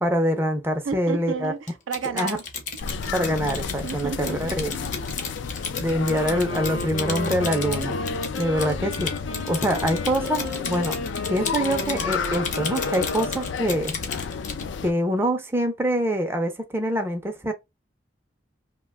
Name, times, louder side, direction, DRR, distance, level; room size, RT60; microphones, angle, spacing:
voice 1, 0.0-1.5 2.1-2.4 3.1-4.7 5.7-8.0 8.4-9.1 9.4-11.0 11.3-13.9 14.8-17.5, equal, 10° right, 0.5 m, -25 dB
voice 2, 0.8-2.4 3.8-4.9, right 5 dB, 85° right, 0.4 m, -32 dB
Typing, 1.7-14.7, left 5 dB, 40° left, 0.7 m, -34 dB
sound 1, 2.8-14.9, left 5 dB, 65° left, 0.3 m, -32 dB
Wind instrument woodwind instrument, 5.9-13.9, left 1 dB, 90° left, 0.8 m, -34 dB
2.8 x 2.2 x 3.3 m
head